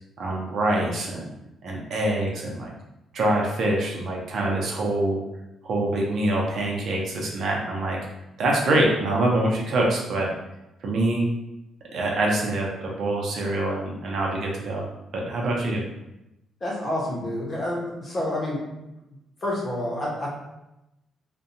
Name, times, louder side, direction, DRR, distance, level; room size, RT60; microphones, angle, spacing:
voice 1, 0.2-1.3 1.6-2.7 3.1-5.2 5.6-8.0 8.4-10.3 10.8-11.2 11.9-14.9 15.1-15.8, right 1 dB, 65° right, -2 dB, 0.6 m, -25 dB
voice 2, 16.6-18.6 19.4-20.3, left 1 dB, 30° left, -4 dB, 0.9 m, -28 dB
2.6 x 2.2 x 2.6 m, 0.92 s
cardioid pair, 90°, 0 cm